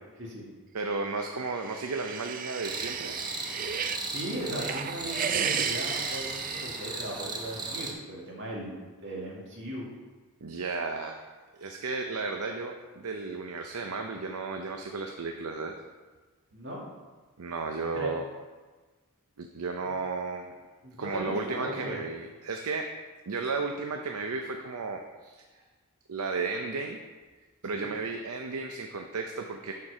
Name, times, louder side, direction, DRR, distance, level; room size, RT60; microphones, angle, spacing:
voice 1, 0.7-3.1 10.4-11.3 11.6-15.7 17.4-18.2 19.4-20.5 21.0-22.9 23.3-25.4 26.1-27.0 27.6-29.7, right 4 dB, 85° right, 3 dB, 0.6 m, -34 dB
sound 1, 1.4-4.1 4.5-7.3, right 7 dB, 40° right, 0.4 m, -34 dB
sound 2, 2.6-7.9, right 3 dB, 20° right, 0.8 m, -36 dB
voice 2, 3.7-9.9 16.5-16.8 17.9-18.1 20.8-22.0 27.7-27.9, right 1 dB, 55° right, -4 dB, 2.2 m, -37 dB
11.5 x 4.6 x 4.9 m, 1.3 s
head